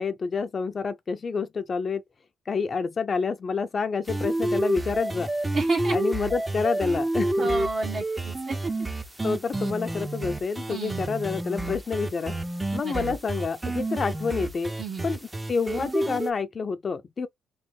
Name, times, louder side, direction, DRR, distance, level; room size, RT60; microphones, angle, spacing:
voice 1, 0.0-2.0 2.5-5.3 5.9-7.5 9.2-12.3 12.7-14.7 15.0-15.2 15.5-17.3, left 5 dB, 40° left, 0.5 m, -28 dB
sound 1, 4.1-16.3, right 1 dB, 15° right, 0.6 m, -29 dB
voice 2, 5.5-6.0 7.4-8.7 10.7-11.2 12.8-13.2 14.8-15.1, right 4 dB, 50° right, 1.1 m, -31 dB
3.1 x 3.0 x 3.3 m
cardioid pair, 90°, 0 cm